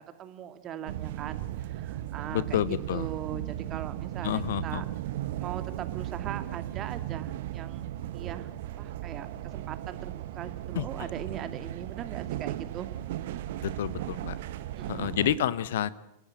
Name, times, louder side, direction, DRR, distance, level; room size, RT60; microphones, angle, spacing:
voice 1, 0.0-2.6 2.9-4.9 5.4-8.5 8.8-9.3 9.5-12.9 14.8-15.2, right 10 dB, 30° right, 10 dB, 2.2 m, -40 dB
sound 1, 0.9-15.4, right 13 dB, 55° right, 1.3 m, -36 dB
voice 2, 2.3-3.1 4.2-4.8 10.7-10.9 13.6-14.4 14.9-15.9, left 11 dB, 60° left, 19 dB, 1.0 m, -29 dB
30.0 x 16.0 x 7.7 m, 0.85 s
figure-of-eight pair, 90°, 0 cm